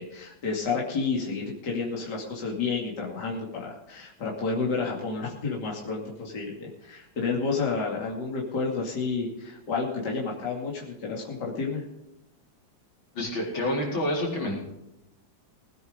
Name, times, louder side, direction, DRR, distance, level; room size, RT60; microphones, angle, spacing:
voice 1, 0.0-11.8, left 4 dB, 60° left, -3 dB, 3.2 m, -30 dB
voice 2, 13.1-14.6, left 1 dB, 85° left, -2 dB, 5.0 m, -28 dB
20.0 x 9.3 x 5.1 m, 0.92 s
omnidirectional pair, 2.1 m